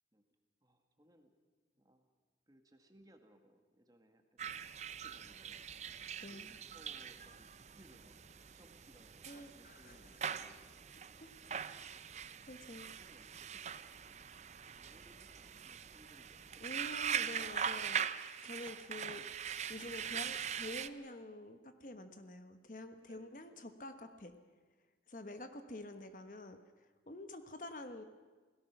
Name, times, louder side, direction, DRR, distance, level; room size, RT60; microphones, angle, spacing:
voice 1, 0.6-1.3 1.7-2.1 2.5-5.7 6.3-8.2 8.5-10.6 12.3-14.2 14.7-16.8 23.0-23.6, right 1 dB, 20° right, 6 dB, 1.8 m, -64 dB
sound 1, 4.4-20.9, right 8 dB, 40° right, 0.6 m, -42 dB
voice 2, 9.3-10.0 11.2-11.6 12.5-12.9 16.6-24.3 25.1-28.0, left 1 dB, 45° left, 8 dB, 1.2 m, -48 dB
29.0 x 17.5 x 6.0 m, 1.4 s
head